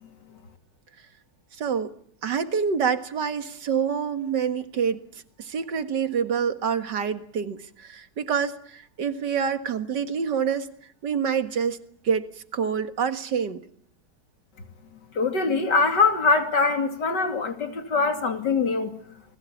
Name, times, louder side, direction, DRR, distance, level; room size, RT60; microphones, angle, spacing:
voice 1, 1.5-1.9 2.2-10.7 11.0-11.8 12.0-13.6, right 7 dB, 85° right, 2.3 m, -27 dB
voice 2, 15.1-18.9, left 4 dB, 85° left, 3.3 m, -23 dB
29.5 x 21.0 x 8.5 m
omnidirectional pair, 1.8 m